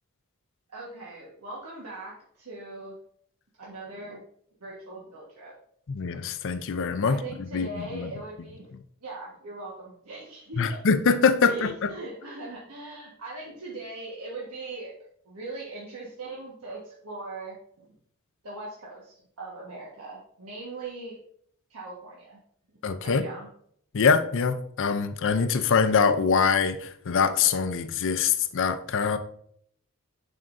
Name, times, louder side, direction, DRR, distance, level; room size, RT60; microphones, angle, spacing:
voice 1, 0.7-3.0 3.6-4.2 4.6-5.5 7.0-8.7 9.0-10.8 11.4-14.9 15.2-17.6 18.4-21.2 21.7-22.4 23.0-23.5, right 2 dB, 85° right, -5 dB, 1.4 m, -40 dB
voice 2, 5.9-8.1 10.6-11.9 22.8-23.2 23.9-29.2, left 5 dB, 60° left, 11 dB, 0.5 m, -24 dB
7.5 x 5.9 x 2.6 m, 0.65 s
head